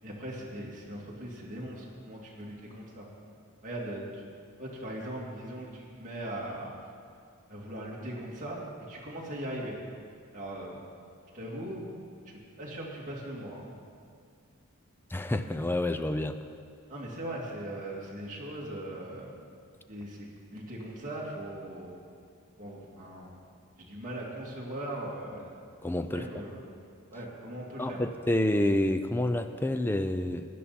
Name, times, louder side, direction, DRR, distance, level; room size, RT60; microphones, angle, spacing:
voice 1, 0.0-3.1 3.6-4.2 4.6-6.7 7.5-8.6 8.9-9.8 10.3-10.8 11.3-11.8 12.3-13.7 16.9-19.3 19.9-22.0 22.6-23.3 23.8-25.5 26.0-26.6 27.1-28.0, right 1 dB, 35° right, -4 dB, 2.5 m, -39 dB
voice 2, 15.1-16.4 25.8-26.3 27.8-30.5, left 1 dB, 10° left, 9 dB, 0.4 m, -28 dB
16.5 x 11.0 x 4.3 m, 2.3 s
head